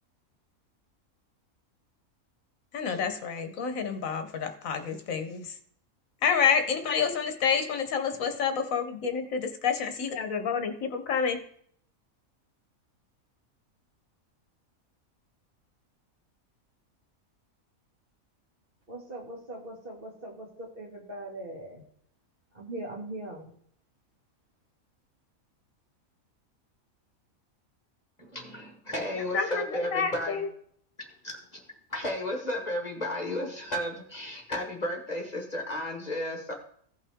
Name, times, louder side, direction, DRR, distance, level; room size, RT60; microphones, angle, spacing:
voice 1, 2.7-5.6 6.2-11.4 29.3-30.5, left 6 dB, 70° left, 7 dB, 1.2 m, -28 dB
voice 2, 18.9-21.8 22.5-23.5, right 1 dB, 40° right, -1 dB, 2.2 m, -40 dB
voice 3, 28.2-30.4 31.2-31.6 31.9-36.5, left 1 dB, 30° left, 2 dB, 1.3 m, -33 dB
16.0 x 5.6 x 3.5 m, 0.64 s
omnidirectional pair, 1.5 m